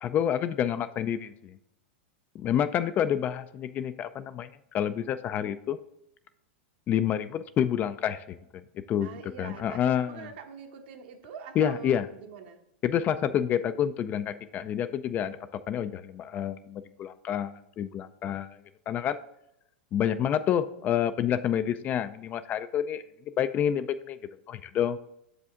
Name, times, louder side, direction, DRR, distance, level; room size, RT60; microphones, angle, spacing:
voice 1, 0.0-1.6 2.3-5.8 6.9-8.6 8.9-9.1 9.4-10.3 11.6-12.1 12.8-15.4 15.7-18.6 18.9-19.2 19.9-23.0 23.4-24.2 24.5-25.0, left 9 dB, 30° left, 12 dB, 0.3 m, -28 dB
voice 2, 9.0-12.6, right 7 dB, 65° right, 4 dB, 1.1 m, -44 dB
7.0 x 5.0 x 3.7 m, 0.80 s
supercardioid pair, 135°, 6 cm